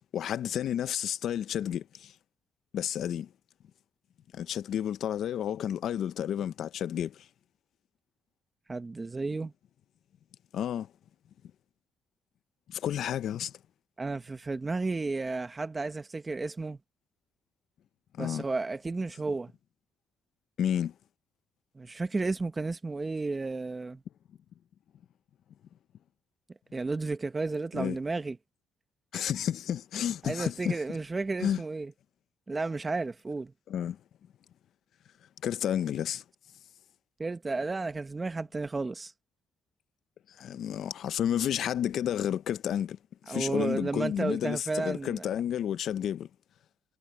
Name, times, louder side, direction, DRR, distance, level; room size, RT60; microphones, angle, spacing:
voice 1, 0.1-2.1 2.7-3.3 4.3-7.3 10.5-10.9 12.7-13.5 18.2-18.4 20.6-20.9 27.7-28.0 29.1-30.8 31.4-31.6 33.7-34.0 35.4-36.2 40.4-43.0 43.2-46.3, left 10 dB, 70° left, 0.8 m, -31 dB
voice 2, 8.7-9.5 14.0-16.8 18.2-19.5 21.7-24.0 26.7-28.4 30.2-31.9 32.5-33.5 37.2-39.1 43.3-45.2, right 3 dB, 25° right, 1.3 m, -32 dB
cardioid pair, 90°, 0 cm